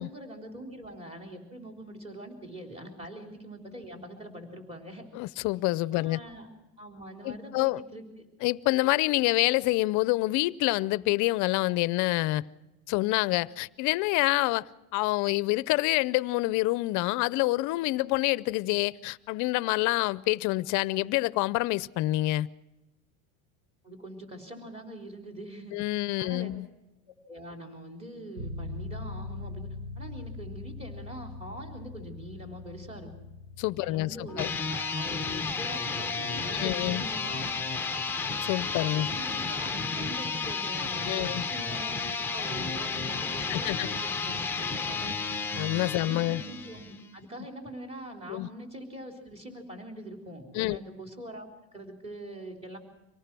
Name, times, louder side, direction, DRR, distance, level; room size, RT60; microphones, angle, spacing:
voice 1, 0.0-5.0 5.9-6.5 6.8-8.0 23.8-25.8 26.2-26.5 27.3-33.1 33.8-38.0 38.8-45.1 46.0-51.5 51.7-52.8, right 1 dB, 15° right, 3.8 m, -43 dB
voice 2, 5.1-6.2 7.2-7.8 8.4-12.4 12.9-14.7 14.9-22.5 25.7-26.7 33.6-34.5 36.5-37.0 38.4-39.1 41.0-41.4 43.5-43.9 45.6-46.4 48.3-48.5 50.5-50.8, left 19 dB, 45° left, 0.6 m, -27 dB
sound 1, 28.4-42.8, left 3 dB, 50° right, 4.0 m, -44 dB
sound 2, 34.3-47.1, left 4 dB, 5° left, 0.9 m, -32 dB
25.5 x 18.5 x 6.1 m
supercardioid pair, 145°, 41 cm